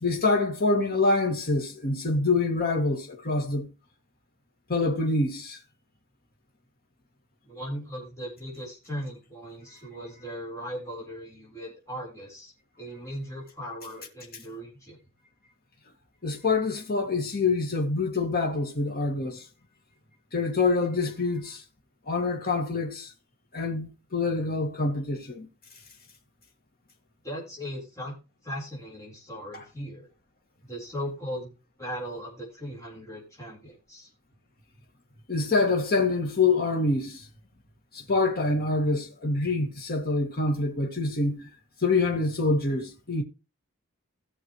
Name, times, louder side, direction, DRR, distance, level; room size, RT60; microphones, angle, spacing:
voice 1, 0.0-3.7 4.7-5.6 16.2-19.4 20.3-21.6 22.1-23.1 23.5-25.5 29.5-29.6 35.3-37.3 37.9-41.5 41.8-43.2, left 3 dB, 45° left, 1.8 m, -26 dB
voice 2, 7.4-12.5 12.8-15.0 27.2-28.2 28.4-30.1 30.7-34.1, equal, 15° left, 4.0 m, -38 dB
17.5 x 6.5 x 3.0 m
head